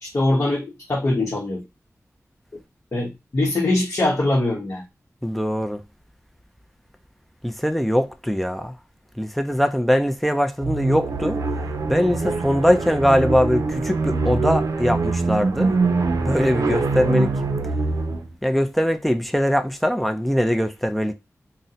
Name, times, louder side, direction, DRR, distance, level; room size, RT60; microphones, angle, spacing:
voice 1, 0.0-1.6 2.9-4.8, left 2 dB, 50° left, 0.8 m, -22 dB
voice 2, 5.2-5.8 7.4-8.8 9.2-11.4 11.9-15.7 16.3-17.4 18.4-21.1, equal, ahead, 0.4 m, -21 dB
sound 1, 10.6-18.3, right 3 dB, 85° right, 0.5 m, -24 dB
2.6 x 2.1 x 3.9 m
wide cardioid pair, 95°, 6 cm